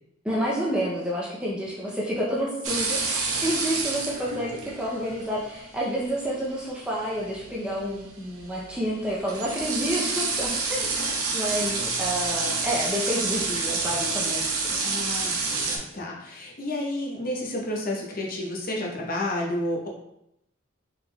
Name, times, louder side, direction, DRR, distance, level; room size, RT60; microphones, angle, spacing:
voice 1, 0.2-14.7, equal, 5° right, -5 dB, 0.5 m, -29 dB
sound 1, 2.6-15.8, right 3 dB, 90° right, 0.7 m, -29 dB
voice 2, 14.7-19.9, left 1 dB, 40° left, -2 dB, 0.7 m, -31 dB
4.3 x 3.5 x 2.2 m, 0.81 s
head